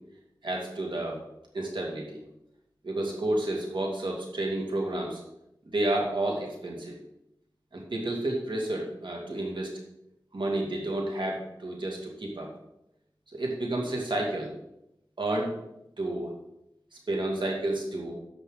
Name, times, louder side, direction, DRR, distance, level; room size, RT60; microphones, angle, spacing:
voice 1, 0.4-1.2 1.5-2.2 2.8-5.2 5.7-7.0 7.7-9.7 10.3-12.5 13.3-14.5 15.2-15.5 16.0-16.3 17.1-18.1, right 1 dB, 70° right, -1 dB, 2.4 m, -30 dB
14.5 x 5.5 x 3.9 m, 0.83 s
wide cardioid pair, 50°, 8 cm